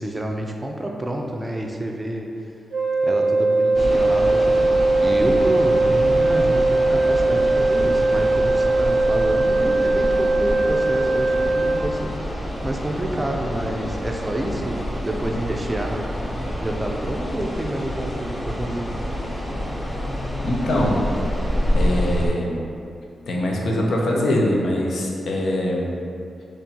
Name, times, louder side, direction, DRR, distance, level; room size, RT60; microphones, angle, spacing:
voice 1, 0.0-2.3 3.0-4.8 5.0-18.9, right 1 dB, 20° right, 1 dB, 0.5 m, -28 dB
Wind instrument woodwind instrument, 2.7-11.9, right 2 dB, 75° right, 0.4 m, -19 dB
sound 1, 3.7-22.3, equal, 10° left, 0.8 m, -28 dB
voice 2, 20.4-21.1 21.7-22.6 23.3-25.9, left 1 dB, 75° left, -1 dB, 0.6 m, -22 dB
4.2 x 3.0 x 2.8 m, 2.4 s
cardioid pair, 55°, 0 cm